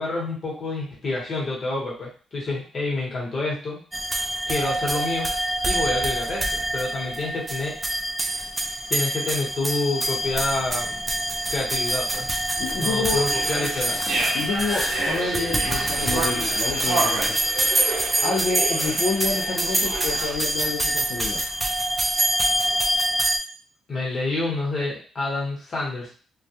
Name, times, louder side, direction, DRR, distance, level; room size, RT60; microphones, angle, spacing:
voice 1, 0.0-3.8 4.5-7.8 8.9-11.0 11.5-12.3 12.8-14.0 23.9-26.1, left 2 dB, 45° left, -4 dB, 1.1 m, -28 dB
sound 1, 3.9-23.4, right 1 dB, 20° right, 0.4 m, -25 dB
sound 2, 10.2-17.3, left 1 dB, 15° left, 0.7 m, -39 dB
voice 2, 12.6-13.2 14.3-17.4 18.2-21.4, left 4 dB, 75° left, -4 dB, 0.5 m, -28 dB
sound 3, 13.3-20.3, right 3 dB, 80° right, 0.6 m, -30 dB
2.3 x 2.1 x 2.8 m, 0.39 s
cardioid pair, 90°, 0 cm